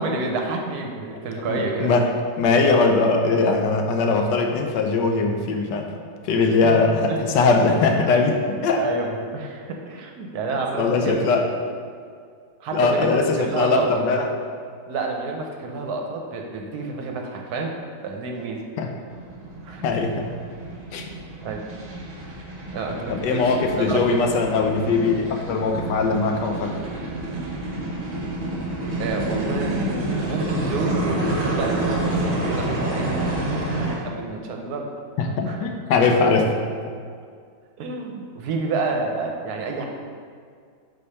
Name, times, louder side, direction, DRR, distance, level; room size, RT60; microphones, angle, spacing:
voice 1, 0.0-2.0 6.6-6.8 7.1-7.2 8.8-11.2 12.6-14.0 14.9-17.8 18.0-18.6 19.6-19.8 20.7-20.8 21.4-21.6 22.7-24.3 29.0-31.0 31.4-34.9 35.2-35.6 36.2-36.3 37.8-39.9, right 3 dB, 70° right, 2 dB, 1.1 m, -29 dB
voice 2, 1.4-2.1 2.4-6.0 6.2-8.8 10.8-11.5 12.7-14.3 18.8-18.9 19.8-20.3 20.9-21.0 23.1-26.8 35.2-36.5, left 4 dB, 85° left, 3 dB, 1.3 m, -21 dB
sound 1, 19.1-33.9, right 1 dB, 35° right, 1.0 m, -28 dB
4.9 x 4.3 x 5.5 m, 2.1 s
omnidirectional pair, 1.9 m